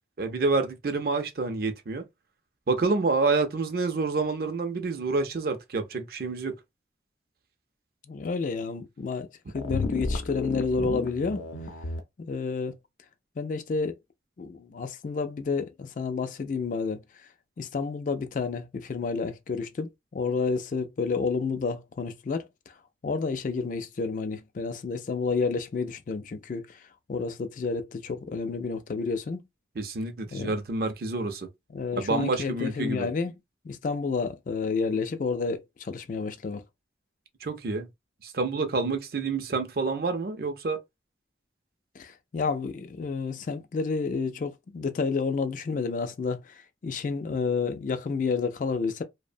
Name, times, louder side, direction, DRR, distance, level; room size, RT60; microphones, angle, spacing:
voice 1, 0.2-2.0 2.7-6.6 29.8-31.5 31.9-33.1 37.4-37.9 38.2-40.8, right 3 dB, 55° right, 0.5 m, -28 dB
voice 2, 8.1-9.3 9.5-11.5 12.2-12.8 13.4-14.0 14.4-17.3 17.6-22.7 23.0-29.4 30.3-30.6 31.7-33.4 33.6-36.6 42.0-49.0, left 4 dB, 45° left, 0.3 m, -30 dB
sound 1, 9.5-12.0, left 2 dB, 85° left, 0.6 m, -32 dB
2.7 x 2.1 x 2.5 m
head